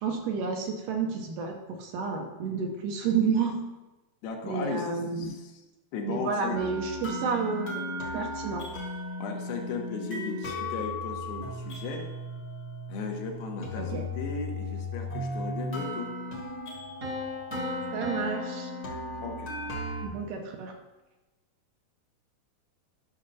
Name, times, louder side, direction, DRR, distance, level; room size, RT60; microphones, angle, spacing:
voice 1, 0.0-3.6 4.4-5.3 6.1-8.7 13.8-14.0 17.9-18.7 20.0-20.7, right 5 dB, 75° right, 2 dB, 2.0 m, -30 dB
voice 2, 4.2-4.9 5.2-5.6 5.9-6.6 9.2-12.1 12.9-16.2 19.2-19.5, left 4 dB, 85° left, 2 dB, 2.8 m, -36 dB
sound 1, 6.5-20.1, left 1 dB, 50° left, 1.2 m, -36 dB
Piano, 17.0-19.9, left 3 dB, 50° right, 1.4 m, -37 dB
12.0 x 6.4 x 2.7 m, 1.0 s
omnidirectional pair, 4.2 m